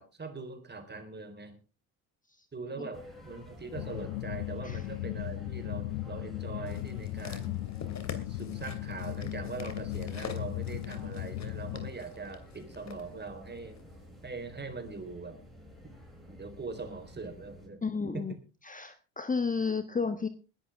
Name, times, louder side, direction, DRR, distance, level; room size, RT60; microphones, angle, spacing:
voice 1, 0.0-1.5 2.5-7.7 8.3-13.8 14.2-15.4 16.4-17.8 18.1-18.3, right 4 dB, 25° right, 7 dB, 4.1 m, -42 dB
sound 1, 2.9-17.7, equal, ahead, 6.7 m, -51 dB
sound 2, 3.7-11.9, left 18 dB, 85° left, 0.7 m, -37 dB
sound 3, 6.7-13.0 13.8-13.9, left 6 dB, 40° left, 2.9 m, -46 dB
voice 2, 17.8-18.3 18.6-20.3, left 4 dB, 20° left, 10 dB, 1.3 m, -32 dB
21.0 x 11.5 x 3.6 m, 0.32 s
supercardioid pair, 75°, 41 cm